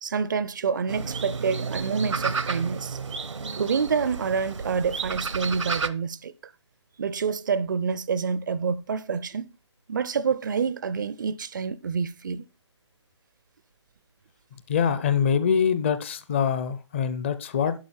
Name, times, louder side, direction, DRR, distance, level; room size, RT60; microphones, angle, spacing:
voice 1, 0.0-3.0 3.5-6.3 7.0-9.5 9.9-12.4, right 6 dB, 40° right, 0.5 m, -27 dB
sound 1, 0.9-5.9, right 5 dB, 85° right, 0.9 m, -31 dB
voice 2, 14.7-17.7, left 7 dB, 25° left, 0.5 m, -24 dB
11.5 x 5.2 x 4.4 m
figure-of-eight pair, 155°, 15 cm